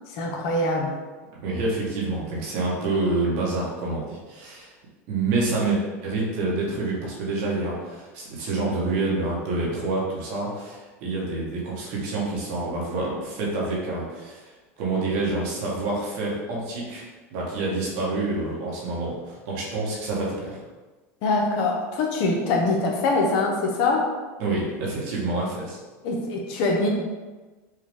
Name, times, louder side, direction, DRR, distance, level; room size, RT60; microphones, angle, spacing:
voice 1, 0.1-1.0 21.2-24.1 26.0-26.9, left 2 dB, 60° left, 1 dB, 0.9 m, -23 dB
voice 2, 1.3-4.7 5.1-14.5 14.8-17.0 17.3-20.6 24.4-25.8, right 2 dB, 65° right, -3 dB, 1.3 m, -27 dB
4.6 x 2.4 x 3.6 m, 1.3 s
supercardioid pair, 110°, 8 cm